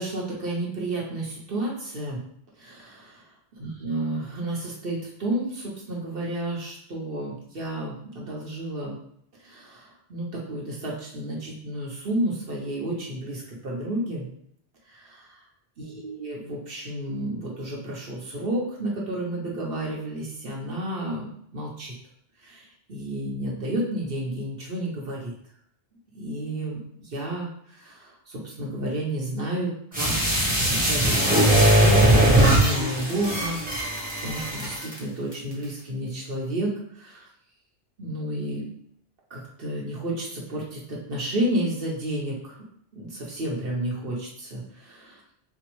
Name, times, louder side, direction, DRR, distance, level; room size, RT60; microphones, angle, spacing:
voice 1, 0.0-2.2 2.6-3.2 3.6-9.0 9.4-14.3 14.9-15.3 15.8-21.9 22.4-25.3 26.1-37.3 38.0-38.7 39.3-42.6 42.9-45.2, right 1 dB, 55° right, -4 dB, 1.2 m, -31 dB
sound 1, 29.9-35.0 35.3-35.4, right 1 dB, 10° right, 0.9 m, -20 dB
4.7 x 2.0 x 3.0 m, 0.69 s
omnidirectional pair, 1.1 m